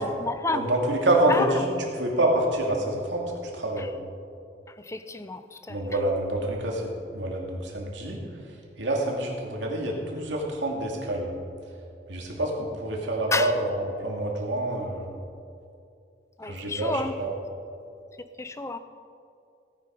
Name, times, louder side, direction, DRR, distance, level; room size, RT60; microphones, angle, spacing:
voice 1, 0.0-0.7 1.3-1.5 3.8-3.9 4.9-5.4 5.7-5.8 13.3-13.5 16.4-17.1 18.4-18.8, left 3 dB, 15° left, 11 dB, 0.5 m, -30 dB
voice 2, 0.5-3.9 5.7-8.2 8.8-11.3 12.1-15.1 16.4-17.3, right 1 dB, 80° right, -1 dB, 2.5 m, -27 dB
17.0 x 9.6 x 5.3 m, 2.5 s
head